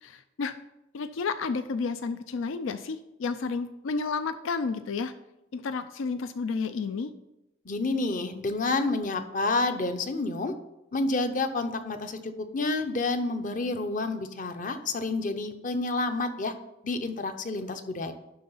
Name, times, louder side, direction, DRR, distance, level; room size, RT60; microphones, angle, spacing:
voice 1, 0.0-0.5 0.9-5.1 5.5-7.1, left 4 dB, 85° left, 11 dB, 0.4 m, -31 dB
voice 2, 7.6-10.5 10.9-16.5 16.8-18.1, left 3 dB, 40° left, 8 dB, 0.7 m, -29 dB
11.5 x 3.9 x 5.6 m, 0.92 s
head